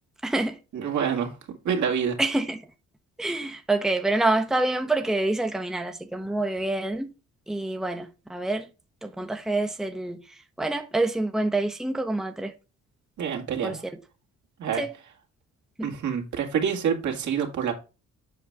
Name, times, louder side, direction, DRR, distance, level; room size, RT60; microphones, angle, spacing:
voice 1, 0.2-0.6 2.2-2.6 3.2-7.1 7.5-8.7 9.0-10.2 10.6-12.5 13.6-13.8 14.8-14.9 15.8-15.9, right 2 dB, ahead, 0.9 m, -27 dB
voice 2, 0.7-1.3 1.6-2.2 13.2-13.8 14.6-14.8 15.8-17.7, right 7 dB, 70° right, 2.2 m, -27 dB
7.7 x 5.2 x 3.5 m
cardioid pair, 90°, 30 cm